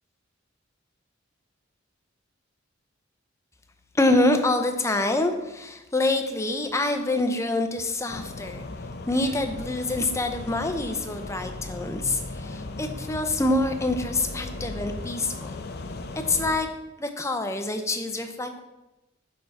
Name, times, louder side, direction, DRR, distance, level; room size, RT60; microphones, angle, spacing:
voice 1, 3.9-8.7 9.1-15.7 16.3-16.7 17.0-18.6, left 2 dB, 15° left, 6 dB, 0.6 m, -26 dB
sound 1, 8.1-16.6, left 2 dB, 55° left, 0.6 m, -37 dB
6.8 x 5.6 x 4.1 m, 1.0 s
head